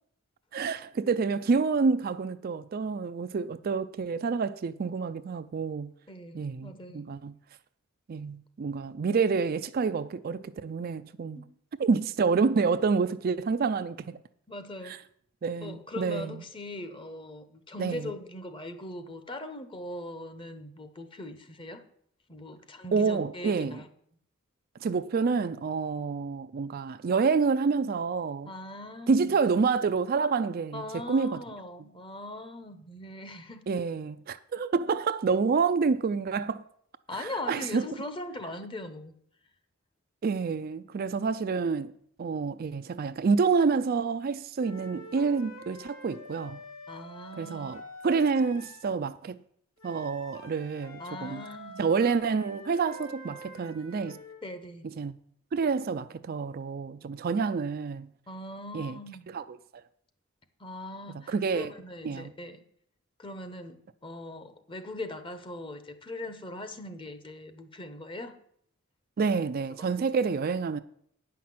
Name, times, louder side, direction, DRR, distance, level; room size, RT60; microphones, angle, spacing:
voice 1, 0.5-5.9 6.3-7.3 8.1-11.4 11.8-14.2 14.9-15.0 15.4-16.4 17.8-18.0 22.9-23.8 24.8-28.5 29.1-30.8 31.1-31.4 33.7-36.6 37.2-37.9 40.2-41.9 42.2-46.6 47.4-47.8 48.0-49.4 49.8-51.4 51.8-54.2 55.0-55.2 55.5-58.1 58.7-59.0 59.3-59.4 61.3-61.7 62.0-62.3 69.2-70.8, right 5 dB, 45° right, 0.4 m, -28 dB
voice 2, 6.1-7.1 11.3-11.5 13.0-13.2 14.5-15.0 15.6-21.8 22.3-23.9 28.5-29.4 30.7-33.6 37.1-39.2 46.9-47.7 51.0-51.9 54.4-54.9 58.3-59.3 60.6-62.6 63.2-68.4 69.8-69.9, left 1 dB, 25° left, 0.9 m, -40 dB
sound 1, 44.6-48.9 49.8-54.4, left 1 dB, 70° left, 2.6 m, -47 dB
9.4 x 5.8 x 7.6 m
head